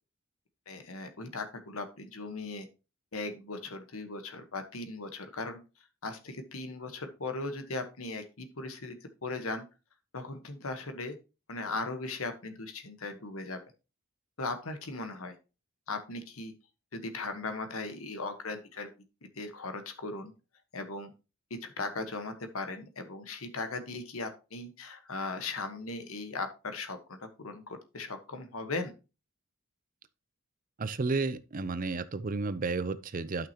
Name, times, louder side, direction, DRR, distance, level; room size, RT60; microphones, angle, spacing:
voice 1, 0.7-2.7 3.1-5.6 6.0-9.6 10.1-11.2 11.5-13.6 14.4-15.3 15.9-16.5 16.9-18.9 19.3-20.3 20.7-21.1 21.6-28.9, left 3 dB, 85° left, 1.3 m, -38 dB
voice 2, 30.8-33.5, right 3 dB, 40° right, 0.5 m, -32 dB
11.5 x 5.8 x 2.9 m
head